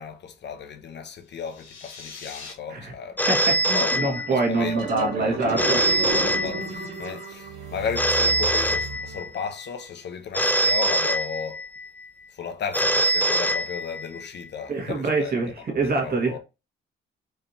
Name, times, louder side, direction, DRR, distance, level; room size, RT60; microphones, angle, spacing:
voice 1, 0.0-3.2 3.7-11.6 12.3-15.3 15.8-16.4, left 6 dB, 60° left, 1.0 m, -34 dB
sound 1, 1.3-2.5, left 5 dB, 80° left, 1.8 m, -42 dB
Telephone, 3.2-4.7 5.6-7.1 8.0-9.5 10.3-11.8 12.7-14.2, right 1 dB, 10° left, 0.5 m, -23 dB
voice 2, 3.3-5.8 14.7-16.3, right 3 dB, 50° right, 1.8 m, -25 dB
sound 2, 4.1-9.4, right 4 dB, 80° right, 2.0 m, -33 dB
4.8 x 3.4 x 2.9 m
cardioid pair, 90°, 20 cm